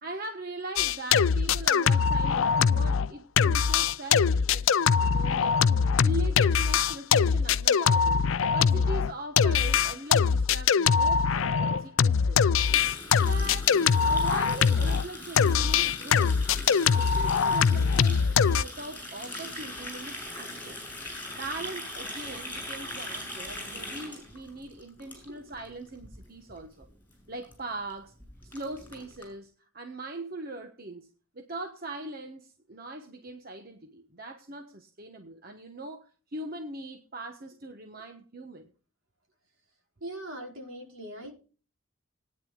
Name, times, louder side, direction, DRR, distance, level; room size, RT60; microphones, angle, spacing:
voice 1, 0.0-5.6 6.0-8.2 8.5-12.5 13.2-13.8 14.0-16.4 16.9-20.8 21.3-26.9 27.3-28.1 28.4-31.1 31.3-38.7, right 2 dB, 45° right, 5 dB, 1.2 m, -40 dB
sound 1, 0.8-3.1 3.4-15.0 15.4-18.6, left 6 dB, 70° left, 0.5 m, -23 dB
Water tap faucet, 12.6-25.7 25.9-26.2 26.5-26.8 27.1-27.2 27.4-27.5 27.9-28.0 28.2-29.3, left 1 dB, 10° left, 7.3 m, -40 dB
voice 2, 25.1-25.5 40.0-41.3, right 1 dB, 70° right, 0 dB, 5.0 m, -41 dB
20.5 x 9.8 x 2.4 m, 0.37 s
head